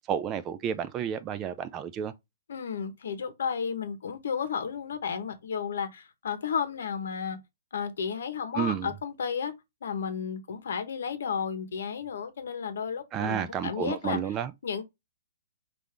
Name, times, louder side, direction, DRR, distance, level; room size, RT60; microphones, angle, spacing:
voice 1, 0.1-2.1 8.5-8.9 13.1-14.5, right 9 dB, 15° right, 0.3 m, -31 dB
voice 2, 2.5-7.4 7.7-9.5 9.8-14.2 14.6-14.8, left 6 dB, 60° left, 1.0 m, -33 dB
5.4 x 2.6 x 3.3 m
hypercardioid pair, 175°, 0 cm